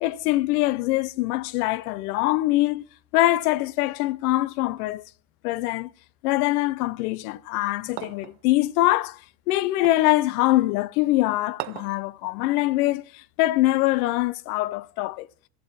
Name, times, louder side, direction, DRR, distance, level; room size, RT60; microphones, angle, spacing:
voice 1, 0.0-2.8 3.1-5.0 5.4-5.9 6.2-9.2 9.5-15.3, left 17 dB, 85° left, 0.7 m, -23 dB
sound 1, 8.0-8.4 9.8-10.1 11.6-12.0, right 18 dB, 45° right, 0.6 m, -36 dB
15.0 x 7.7 x 4.2 m
cardioid pair, 170°, 44 cm